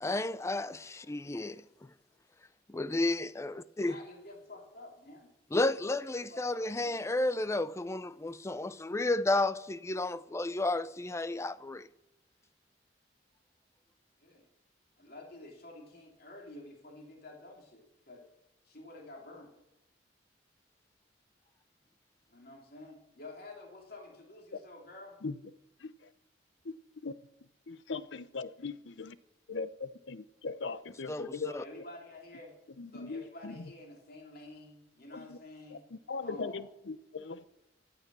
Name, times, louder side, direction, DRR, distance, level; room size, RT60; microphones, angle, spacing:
voice 1, 0.0-1.6 2.7-4.0 5.5-11.9 31.1-31.6, left 2 dB, 15° left, 0.4 m, -32 dB
voice 2, 0.9-1.4 3.8-5.3 6.1-6.9 14.2-14.5 15.0-18.2 18.6-19.5 22.3-25.2 31.4-32.5 32.9-35.8 36.2-36.7, left 2 dB, 55° left, 3.1 m, -50 dB
voice 3, 27.7-28.7 29.0-29.1 29.5-31.5 32.8-33.5 35.1-35.4 35.7-37.4, left 4 dB, 80° left, 0.7 m, -39 dB
14.5 x 10.0 x 6.2 m
head